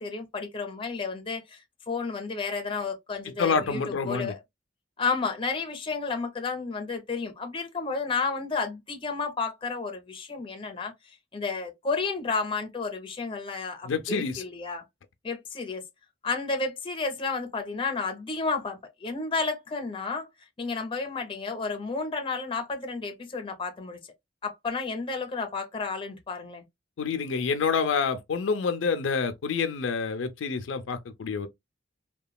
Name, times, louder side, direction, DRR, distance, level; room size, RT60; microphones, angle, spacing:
voice 1, 0.0-4.4 5.0-10.9 11.3-14.8 15.2-15.8 16.2-20.3 20.6-24.0 24.4-26.6, left 4 dB, 30° left, 0.6 m, -31 dB
voice 2, 3.4-4.3 13.8-14.4 27.0-31.5, left 5 dB, 85° left, 0.4 m, -27 dB
3.0 x 2.2 x 2.2 m
head